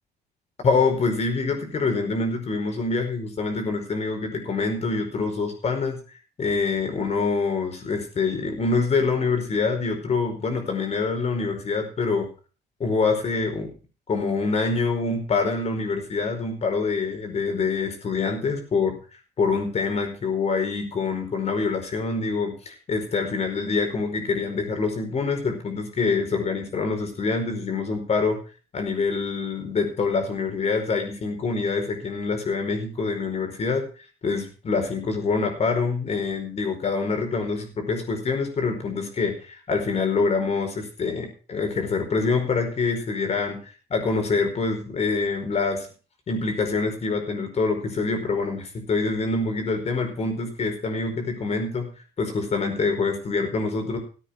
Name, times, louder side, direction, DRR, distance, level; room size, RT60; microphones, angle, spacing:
voice 1, 0.6-6.0 6.4-12.3 12.8-13.7 14.1-19.0 19.4-28.4 28.7-33.8 34.2-43.6 43.9-45.9 46.3-51.9 52.2-54.0, left 4 dB, 40° left, 4 dB, 4.9 m, -25 dB
14.5 x 9.0 x 5.4 m, 0.36 s
cardioid pair, 110°, 17 cm